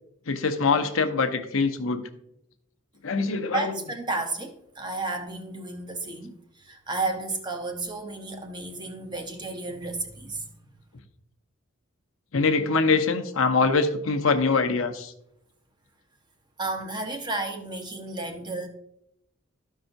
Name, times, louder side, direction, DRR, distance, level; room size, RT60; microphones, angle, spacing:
voice 1, 0.3-2.1 3.0-3.7 12.3-15.1, left 4 dB, 65° left, 7 dB, 0.8 m, -23 dB
voice 2, 3.5-10.5 16.6-18.7, right 2 dB, 20° right, 4 dB, 0.9 m, -32 dB
13.5 x 5.5 x 2.6 m, 0.78 s
head